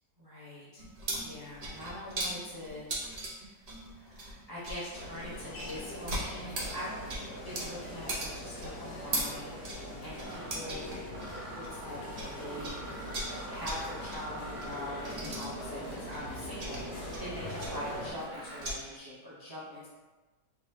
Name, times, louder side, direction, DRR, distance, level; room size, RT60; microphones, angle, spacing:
voice 1, 0.2-0.8 1.1-3.5 3.9-7.0 7.4-11.0 11.4-12.7 13.5-19.9, left 1 dB, 25° right, -10 dB, 0.5 m, -43 dB
sound 1, 0.8-12.3 12.6-18.8, right 1 dB, 85° right, 0.3 m, -39 dB
sound 2, 4.9-18.1, left 1 dB, 70° left, 1.3 m, -42 dB
Mechanisms, 9.6-9.7 10.2-10.6 11.0-18.9, right 2 dB, 65° right, 0.9 m, -47 dB
3.4 x 3.4 x 2.7 m, 1.2 s
omnidirectional pair, 1.6 m